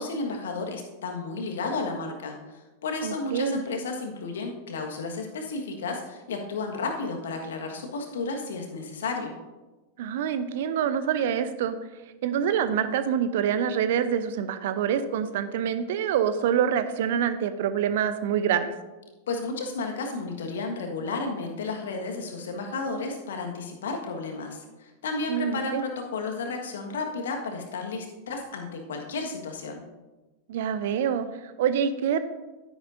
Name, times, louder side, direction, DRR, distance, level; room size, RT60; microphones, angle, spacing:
voice 1, 0.0-9.3 19.3-29.8, left 3 dB, 60° left, 3 dB, 1.5 m, -32 dB
voice 2, 3.0-3.6 10.0-11.8 12.2-18.7 25.3-25.8 30.5-32.2, right 8 dB, 55° right, 11 dB, 0.7 m, -26 dB
12.0 x 10.5 x 2.7 m, 1.2 s
figure-of-eight pair, 90°, 0 cm